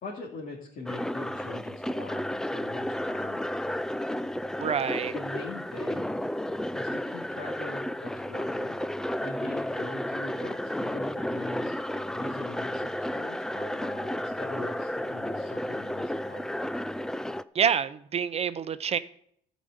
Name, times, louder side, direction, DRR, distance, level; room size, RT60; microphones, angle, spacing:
voice 1, 0.0-4.0 5.1-6.1 6.7-8.8 9.2-11.7 12.1-16.6, left 3 dB, 55° left, 2.7 m, -42 dB
sound 1, 0.9-17.4, left 1 dB, 5° left, 0.4 m, -32 dB
voice 2, 4.6-5.1 17.5-19.0, right 7 dB, 40° right, 0.7 m, -27 dB
13.0 x 5.2 x 8.0 m
cardioid pair, 110°, 17 cm